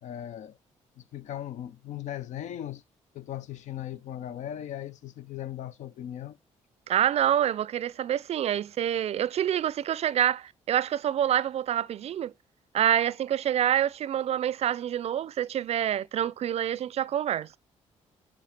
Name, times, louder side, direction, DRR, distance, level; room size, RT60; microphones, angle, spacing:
voice 1, 0.0-0.6 1.0-2.8 3.1-6.4, left 11 dB, 75° left, 0.6 m, -38 dB
voice 2, 6.9-12.3 12.7-17.5, right 10 dB, 55° right, 0.4 m, -27 dB
10.5 x 3.5 x 7.2 m
cardioid pair, 75°, 13 cm